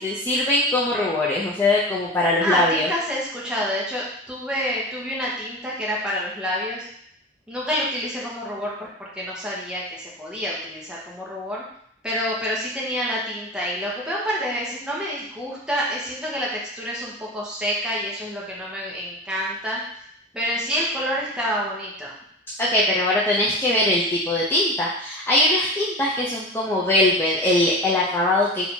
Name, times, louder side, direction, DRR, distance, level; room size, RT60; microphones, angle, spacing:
voice 1, 0.0-2.9 22.6-28.7, left 1 dB, 15° left, -7 dB, 0.5 m, -21 dB
voice 2, 2.4-6.9 7.5-11.6 12.0-19.8 20.3-22.1, equal, 5° right, -6 dB, 1.1 m, -28 dB
3.4 x 2.8 x 4.4 m, 0.66 s
head